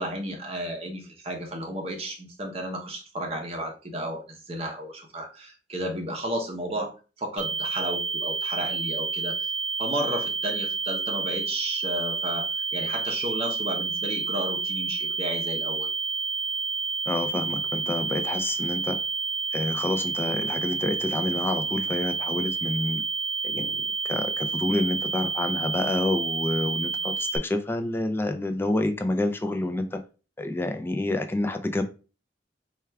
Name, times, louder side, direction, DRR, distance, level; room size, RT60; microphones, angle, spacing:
voice 1, 0.0-9.5 9.8-15.9, right 1 dB, 35° right, 2 dB, 0.7 m, -33 dB
sound 1, 7.4-27.4, right 4 dB, 80° left, 0.8 m, -29 dB
voice 2, 17.1-19.0 19.5-23.0 23.4-30.0 30.4-31.8, left 2 dB, 10° left, 6 dB, 0.4 m, -28 dB
4.4 x 2.3 x 3.3 m, 0.33 s
head